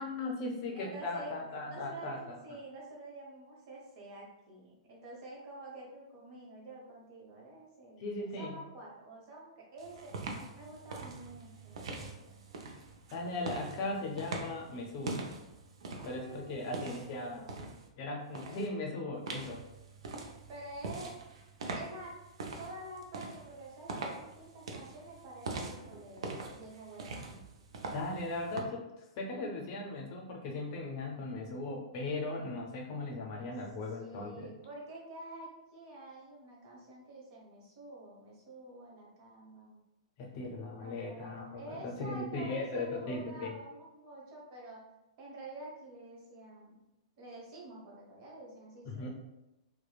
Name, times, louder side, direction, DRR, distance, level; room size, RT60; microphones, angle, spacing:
voice 1, 0.0-2.4 8.0-8.6 13.1-15.2 16.0-17.4 18.0-19.6 27.9-28.9 29.2-34.5 40.2-43.5 48.8-49.1, left 2 dB, 45° left, 0 dB, 0.6 m, -38 dB
voice 2, 0.7-10.1 10.5-12.4 15.9-16.8 17.1-17.7 20.5-21.2 21.7-22.2 22.6-27.4 33.9-39.8 40.8-44.9 45.2-46.8 47.2-49.1, right 2 dB, 45° right, -3 dB, 1.0 m, -48 dB
sound 1, 9.8-17.9 18.3-18.7 19.3-28.6, right 3 dB, 65° right, 0.4 m, -43 dB
2.9 x 2.1 x 2.3 m, 0.95 s
hypercardioid pair, 115°, 3 cm